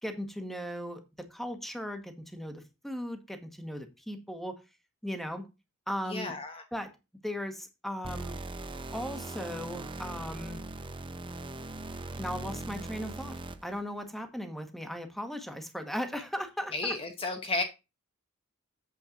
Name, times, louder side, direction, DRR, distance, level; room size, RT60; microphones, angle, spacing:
voice 1, 0.0-4.6 5.0-5.4 5.9-6.3 6.7-6.9 7.2-8.4 8.9-10.6 12.2-17.0, equal, ahead, 1.2 m, -37 dB
voice 2, 6.1-6.6 16.7-17.6, left 3 dB, 25° left, 0.9 m, -32 dB
sound 1, 8.0-13.8, right 2 dB, 20° right, 0.7 m, -40 dB
8.4 x 4.5 x 7.0 m
head